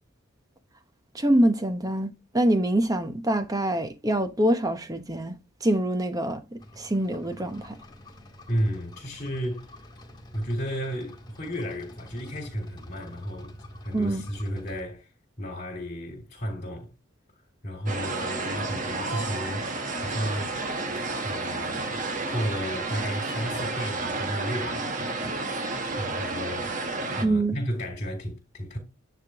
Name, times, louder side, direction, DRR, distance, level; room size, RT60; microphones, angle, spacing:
voice 1, 1.1-5.3 5.6-6.4 6.7-7.8 13.9-14.2 27.2-27.5, right 1 dB, 20° right, 0.9 m, -25 dB
sound 1, 6.6-14.8, left 1 dB, 20° left, 1.9 m, -47 dB
voice 2, 8.5-9.7 10.3-13.6 13.8-15.1 15.4-16.9 17.6-20.6 21.2-22.0 22.3-25.7 26.0-28.8, equal, 40° left, 2.9 m, -33 dB
sound 2, 17.9-27.3, right 3 dB, 40° right, 1.2 m, -31 dB
9.7 x 3.6 x 3.6 m
head